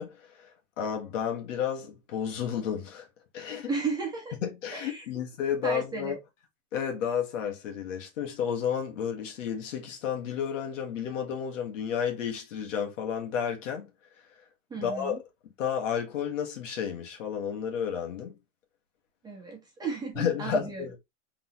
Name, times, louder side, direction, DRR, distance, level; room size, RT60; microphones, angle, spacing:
voice 1, 0.0-3.1 3.3-3.7 4.4-6.2 6.7-13.9 14.2-14.4 14.8-15.2 15.6-18.4 20.2-21.0, left 7 dB, 75° left, 1.8 m, -32 dB
voice 2, 3.7-4.3 4.7-5.0 5.6-6.2 14.7-15.2 19.2-20.8, right 4 dB, 10° right, 1.2 m, -34 dB
3.8 x 3.8 x 3.0 m
supercardioid pair, 150°, 38 cm